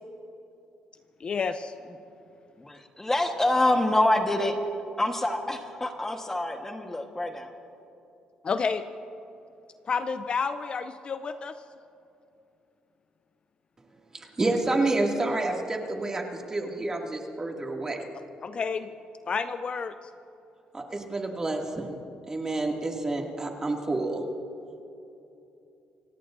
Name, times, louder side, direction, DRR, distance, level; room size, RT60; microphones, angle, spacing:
voice 1, 1.2-1.7 8.4-8.8 9.8-11.6 18.4-18.9 19.3-20.1, left 5 dB, 40° left, 10 dB, 0.5 m, -30 dB
voice 2, 2.6-4.6 5.0-7.5, left 1 dB, 15° left, 4 dB, 1.3 m, -26 dB
voice 3, 14.1-18.0 20.7-22.0 22.3-24.3, right 2 dB, 25° right, 1 dB, 2.3 m, -29 dB
27.5 x 16.5 x 2.6 m, 2.8 s
cardioid pair, 95°, 3 cm